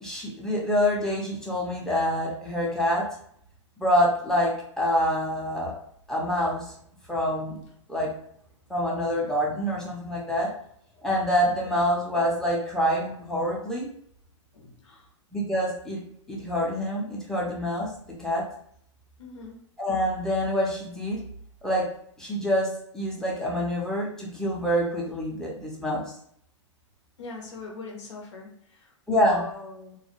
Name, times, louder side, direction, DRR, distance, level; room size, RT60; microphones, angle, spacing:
voice 1, 0.0-3.1 3.8-5.7 6.1-6.7 7.1-7.6 7.9-8.1 8.7-10.5 11.0-13.9 15.3-16.0 16.3-17.9 18.2-18.4 19.8-21.2 21.6-21.9 22.2-26.1 29.1-29.4, equal, 5° left, -3 dB, 0.6 m, -26 dB
voice 2, 14.5-15.1 19.2-19.6 27.2-30.0, left 3 dB, 70° left, 0 dB, 0.7 m, -41 dB
2.3 x 2.0 x 2.9 m, 0.68 s
hypercardioid pair, 115°, 16 cm